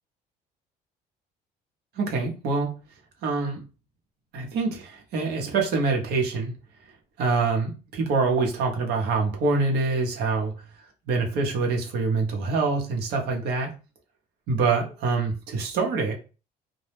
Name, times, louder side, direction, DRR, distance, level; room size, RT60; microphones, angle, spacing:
voice 1, 2.0-2.7 3.2-3.6 4.3-6.5 7.2-10.5 11.1-13.7 14.5-16.1, right 4 dB, 75° right, 2 dB, 0.7 m, -25 dB
2.1 x 2.0 x 3.0 m, 0.33 s
cardioid pair, 110°, 17 cm